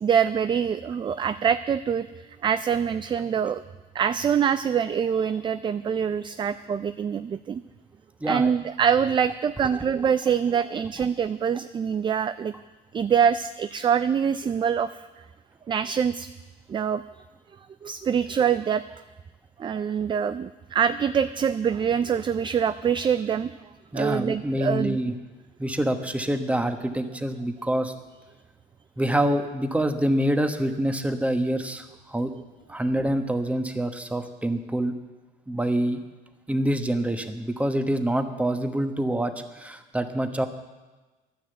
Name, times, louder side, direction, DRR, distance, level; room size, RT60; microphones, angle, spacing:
voice 1, 0.0-3.6 3.9-7.6 8.2-12.5 12.9-15.1 15.7-16.3 16.7-17.0 17.8-18.8 19.6-23.5 23.9-25.0, right 7 dB, 30° right, 12 dB, 0.4 m, -24 dB
voice 2, 8.2-8.5 23.9-25.1 25.6-27.9 29.0-32.3 32.7-34.9 35.5-36.0 36.5-40.5, right 1 dB, 10° right, 7 dB, 1.2 m, -26 dB
11.5 x 10.0 x 7.9 m, 1.2 s
cardioid pair, 110°, 17 cm